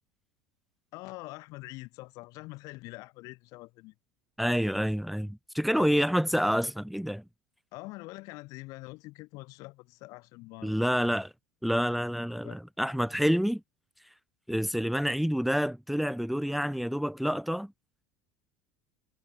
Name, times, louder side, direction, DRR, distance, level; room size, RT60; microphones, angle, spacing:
voice 1, 0.9-3.9 5.8-5.9 7.7-10.9 12.4-12.6, left 22 dB, 60° left, 2.0 m, -44 dB
voice 2, 4.4-7.2 10.6-11.3 11.6-13.6 14.5-17.7, equal, ahead, 1.1 m, -28 dB
supercardioid pair, 120°, 7 cm